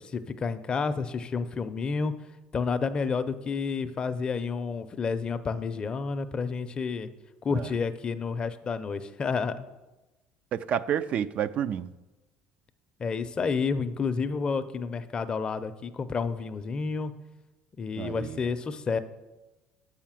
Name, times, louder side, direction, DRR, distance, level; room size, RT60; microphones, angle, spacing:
voice 1, 0.0-2.1 2.5-7.1 7.4-9.5 13.0-17.1 17.8-19.0, left 5 dB, 30° left, 0.5 m, -30 dB
voice 2, 10.5-11.9 18.0-18.4, right 9 dB, 50° right, 0.3 m, -30 dB
6.9 x 5.7 x 7.4 m
cardioid pair, 115°, 3 cm